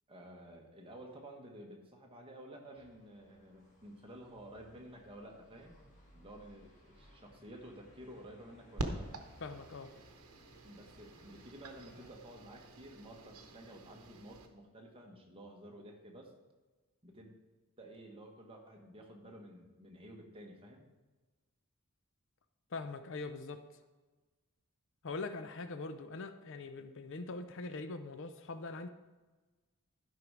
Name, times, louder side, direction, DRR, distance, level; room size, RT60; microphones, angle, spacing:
voice 1, 0.1-5.8 6.1-9.2 10.6-16.3 17.0-17.3 17.8-20.8, right 1 dB, 25° right, 1 dB, 1.3 m, -52 dB
sound 1, 2.7-12.1, equal, 35° left, 2.1 m, -63 dB
sound 2, 8.8-14.5, right 2 dB, 75° right, 1.0 m, -46 dB
voice 2, 9.4-9.9 22.7-23.6 25.0-28.9, left 3 dB, 60° left, 10 dB, 0.6 m, -42 dB
12.0 x 5.5 x 4.7 m, 1.2 s
head